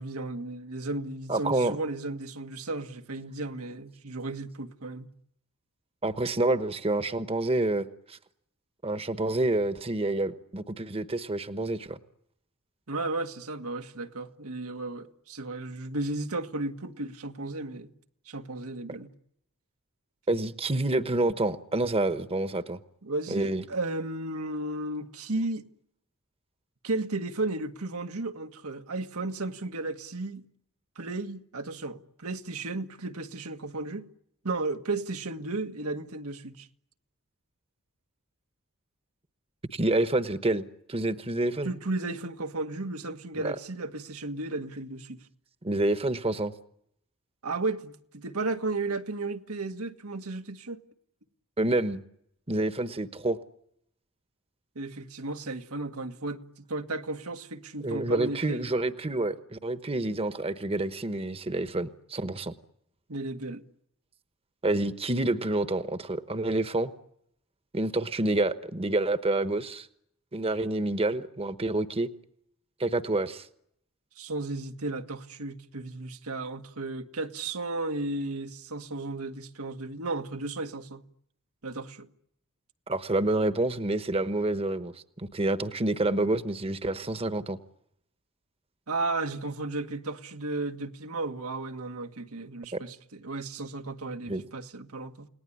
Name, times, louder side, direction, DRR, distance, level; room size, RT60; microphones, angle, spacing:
voice 1, 0.0-5.1 12.9-17.9 18.2-19.1 23.0-25.7 26.8-30.4 30.9-34.1 34.4-36.7 41.6-45.3 47.4-50.8 54.7-58.6 63.1-63.6 74.2-81.0 81.6-82.1 88.9-95.3, right 2 dB, 85° right, 1.7 m, -34 dB
voice 2, 1.3-1.8 6.0-8.2 8.8-12.0 18.9-19.0 20.3-22.8 23.3-23.6 39.7-40.6 40.9-41.7 43.3-43.5 45.6-46.5 51.6-52.0 52.5-53.4 57.8-62.5 64.6-66.9 67.7-69.9 70.3-72.1 72.8-73.5 82.9-87.6 92.7-92.8 94.3-94.4, right 2 dB, 25° right, 1.1 m, -28 dB
29.5 x 19.0 x 10.0 m
head